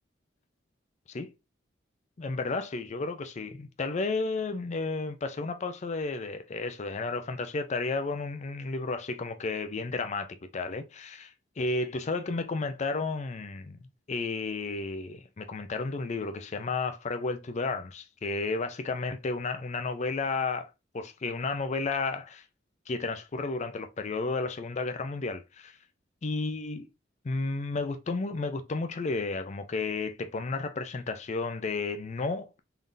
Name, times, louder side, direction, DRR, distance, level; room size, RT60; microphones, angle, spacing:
voice 1, 2.2-13.8 14.1-20.7 20.9-22.4 22.9-25.8 26.2-26.9 27.2-32.6, left 3 dB, 40° left, 0.5 m, -32 dB
3.8 x 3.4 x 2.6 m
head